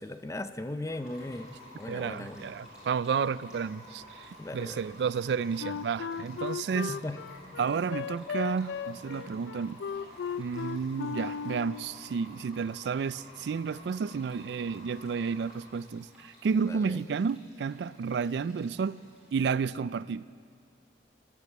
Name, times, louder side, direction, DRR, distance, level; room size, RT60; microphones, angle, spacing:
voice 1, 0.0-1.5 1.7-2.4 4.4-4.8 6.7-7.2 16.7-17.0, left 1 dB, 15° left, 10 dB, 0.5 m, -38 dB
sound 1, 0.9-15.6, left 1 dB, 35° left, 3.9 m, -51 dB
Stream, 1.0-19.5, equal, 5° right, 4.8 m, -60 dB
voice 2, 1.9-7.0 7.6-9.8 10.4-19.0 19.3-20.2, right 5 dB, 65° right, 19 dB, 0.3 m, -31 dB
Wind instrument woodwind instrument, 5.6-11.9, left 7 dB, 85° left, 0.3 m, -36 dB
20.0 x 9.8 x 7.3 m, 2.2 s
head